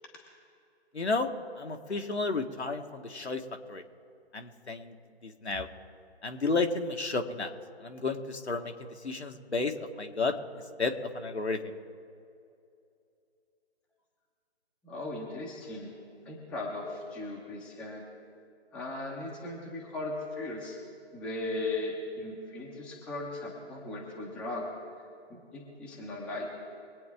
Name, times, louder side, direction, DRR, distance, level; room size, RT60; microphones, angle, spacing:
voice 1, 0.9-1.3 1.6-3.4 3.7-3.8 4.3-4.9 5.2-5.7 6.2-7.5 7.8-8.7 9.0-10.3 10.8-11.8, left 3 dB, 75° left, 4 dB, 1.6 m, -32 dB
voice 2, 14.8-15.9 16.2-18.0 18.7-20.8 21.1-24.6 25.3-26.5, left 2 dB, 5° left, -3 dB, 0.9 m, -37 dB
23.0 x 9.1 x 3.6 m, 2.5 s
figure-of-eight pair, 150°, 33 cm